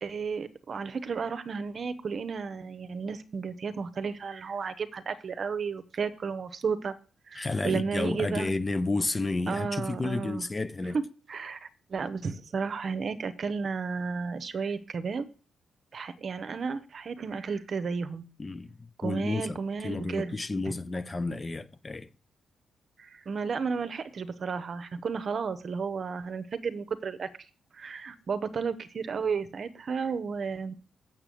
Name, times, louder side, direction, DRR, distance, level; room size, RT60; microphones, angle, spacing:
voice 1, 0.0-6.9 7.3-8.5 9.5-10.4 10.9-11.0 11.3-15.3 15.9-18.2 19.0-20.4 23.0-27.3 27.7-30.7, right 5 dB, 50° right, 0.9 m, -33 dB
voice 2, 7.3-11.0 18.4-18.7 19.0-22.1, left 3 dB, 25° left, 0.5 m, -31 dB
7.2 x 6.8 x 7.7 m
cardioid pair, 110°, 0 cm